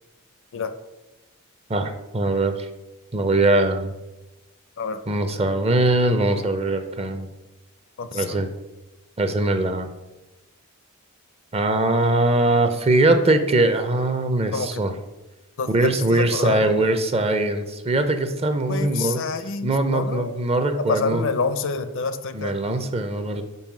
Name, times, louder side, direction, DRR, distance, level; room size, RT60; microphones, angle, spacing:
voice 1, 1.7-2.7 3.1-3.9 5.1-7.3 8.1-8.5 9.2-9.9 11.5-14.9 15.7-19.2 19.6-21.2 22.3-23.4, right 2 dB, 25° right, 8 dB, 0.6 m, -21 dB
voice 2, 8.0-8.4 14.5-14.8 15.6-16.9 18.7-20.3 20.8-22.6, left 4 dB, 60° left, 11 dB, 0.6 m, -27 dB
5.4 x 4.8 x 6.0 m, 1.0 s
head